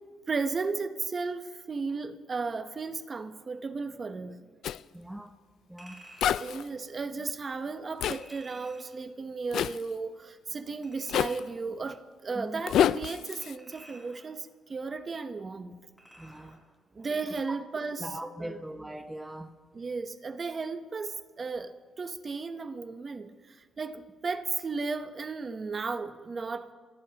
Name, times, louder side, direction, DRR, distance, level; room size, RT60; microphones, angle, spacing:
voice 1, 0.3-4.4 6.4-15.8 16.9-18.6 19.7-26.7, right 4 dB, 35° right, 10 dB, 0.9 m, -35 dB
Zipper (clothing), 4.6-4.8 6.2-6.6 8.0-8.2 9.5-9.8 11.1-11.4 12.7-13.6, left 10 dB, 75° left, 0.3 m, -27 dB
voice 2, 4.9-5.3 5.7-6.0 12.3-12.6 16.2-16.6 17.5-17.6 18.0-19.5, right 1 dB, 5° right, 7 dB, 0.8 m, -40 dB
Chink clink, 5.8-6.6 8.1-9.0 10.8-11.6 13.4-14.4 16.0-16.6 17.0-17.1, right 1 dB, 10° left, 5.3 m, -53 dB
25.5 x 16.5 x 2.9 m, 1.5 s
cardioid pair, 90°, 0 cm